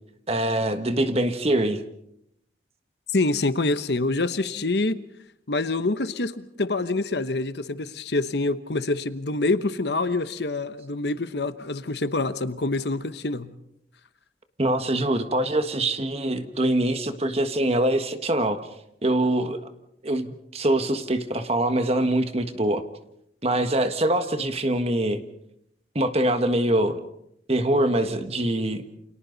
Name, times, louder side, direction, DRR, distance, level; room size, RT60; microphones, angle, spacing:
voice 1, 0.3-1.8 14.6-18.6 19.0-19.6 20.0-22.8 23.4-25.2 25.9-27.0 27.5-28.8, right 1 dB, 35° right, 8 dB, 1.5 m, -24 dB
voice 2, 3.1-5.0 5.5-13.5, left 2 dB, 65° left, 12 dB, 1.0 m, -26 dB
29.5 x 27.5 x 4.1 m, 0.78 s
head